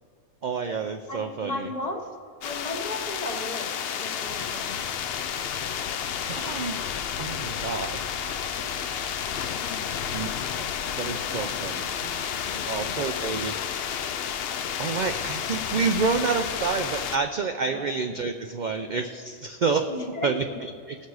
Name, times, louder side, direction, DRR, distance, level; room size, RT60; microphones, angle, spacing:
voice 1, 0.4-1.7 6.3-6.8 7.2-8.0 10.1-10.3 10.6-10.7 11.0-12.3 12.6-13.5 14.4-19.9 20.2-21.0, right 5 dB, 70° right, 6 dB, 0.4 m, -29 dB
voice 2, 1.1-2.1 2.4-4.8 8.5-8.8 9.2-10.3 12.4-13.0 17.7-17.9 19.9-20.6, left 2 dB, 35° left, 3 dB, 0.9 m, -36 dB
sound 1, 2.4-17.2, left 8 dB, 60° left, 0.7 m, -31 dB
19.5 x 6.7 x 4.7 m, 2.2 s
omnidirectional pair, 1.4 m